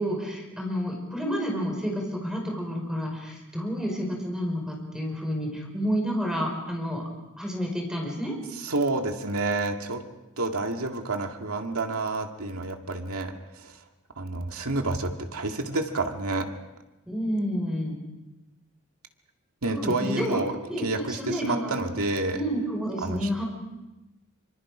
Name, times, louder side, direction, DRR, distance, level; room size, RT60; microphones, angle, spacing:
voice 1, 0.0-7.0 7.4-8.3 17.1-18.0 19.7-20.4 20.7-21.7 22.3-23.4, equal, 5° right, 0 dB, 5.1 m, -30 dB
voice 2, 8.6-10.0 10.4-13.8 14.2-16.5 19.6-20.6 20.8-22.4 23.0-23.4, right 2 dB, 80° right, 4 dB, 2.1 m, -29 dB
25.5 x 25.0 x 5.0 m, 1.0 s
head